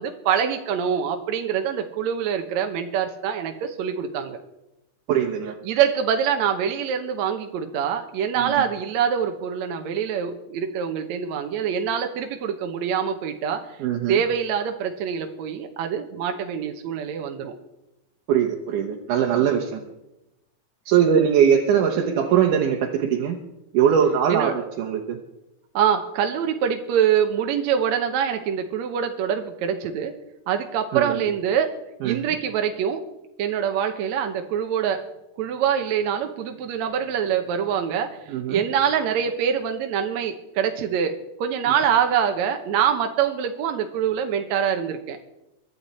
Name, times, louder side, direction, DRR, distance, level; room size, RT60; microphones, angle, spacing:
voice 1, 0.0-4.4 5.6-13.6 14.1-17.5 24.3-24.5 25.8-30.1 30.5-31.7 32.0-33.0 33.4-35.0 35.4-45.2, right 8 dB, 70° right, 5 dB, 2.1 m, -24 dB
voice 2, 5.1-5.5 8.3-8.5 13.8-14.2 18.3-19.8 20.9-23.4 23.7-25.2 30.9-31.2 32.0-32.3 38.3-38.6, right 8 dB, 90° right, 1 dB, 2.6 m, -21 dB
22.5 x 9.7 x 4.3 m, 0.92 s
omnidirectional pair, 3.5 m